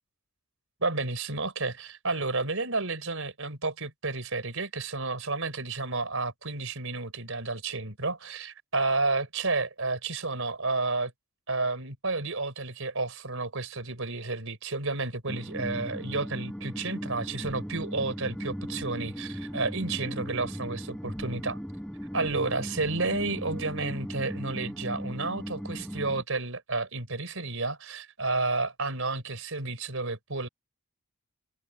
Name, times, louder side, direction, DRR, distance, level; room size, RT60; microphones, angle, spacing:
voice 1, 0.8-11.1 11.5-21.6 22.1-30.5, right 3 dB, 65° right, 4.5 m, -31 dB
sound 1, 15.3-26.2, equal, 5° left, 5.4 m, -37 dB
head